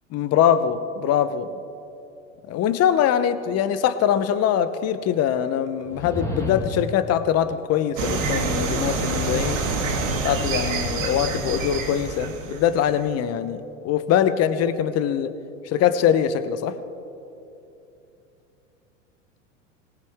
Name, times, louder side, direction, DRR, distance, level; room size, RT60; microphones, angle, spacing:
voice 1, 0.1-1.5 2.5-9.6 10.2-15.3 15.7-16.8, left 9 dB, 40° left, 12 dB, 0.9 m, -22 dB
sound 1, 5.8-7.0, left 1 dB, 10° left, 1.8 m, -30 dB
sound 2, 8.0-13.0, right 3 dB, 80° right, 2.6 m, -26 dB
20.0 x 18.5 x 3.6 m, 2.8 s
hypercardioid pair, 95°, 39 cm